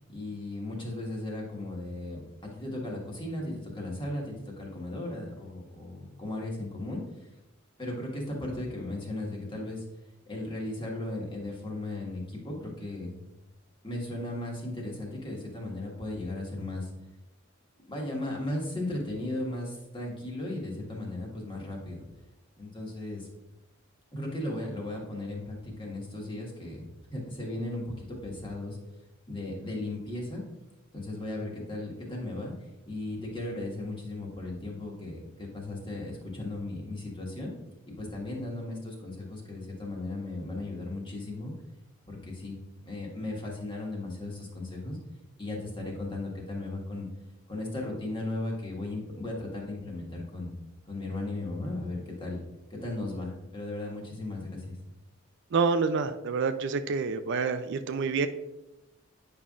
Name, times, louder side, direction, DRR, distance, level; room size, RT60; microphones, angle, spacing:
voice 1, 0.1-7.3 7.8-9.8 10.3-13.1 13.8-16.9 17.9-22.0 22.6-23.3 24.1-28.8 29.3-30.4 30.9-32.5 32.9-37.5 37.9-41.5 42.1-42.6 42.8-45.0 45.4-47.1 47.5-50.5 50.8-52.4 52.7-54.8, left 2 dB, 25° left, -2 dB, 1.5 m, -36 dB
voice 2, 55.5-58.3, right 5 dB, 60° right, 10 dB, 0.4 m, -27 dB
9.1 x 5.4 x 2.4 m, 0.94 s
head